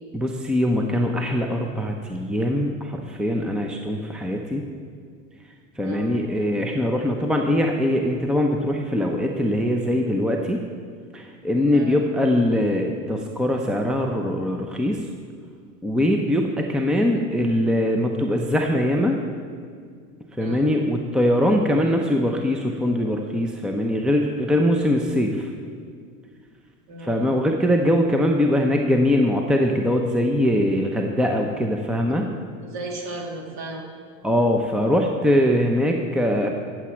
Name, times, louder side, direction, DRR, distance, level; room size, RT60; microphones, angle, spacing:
voice 1, 0.1-4.6 5.8-10.6 11.1-15.0 15.8-19.2 20.4-25.5 27.0-32.3 34.2-36.5, left 1 dB, ahead, 2 dB, 0.8 m, -22 dB
voice 2, 5.8-6.2 11.7-12.0 20.4-20.7 26.9-27.3 32.6-33.9, right 2 dB, 45° right, 0 dB, 2.7 m, -35 dB
14.0 x 7.6 x 4.5 m, 2.1 s
hypercardioid pair, 90°, 40 cm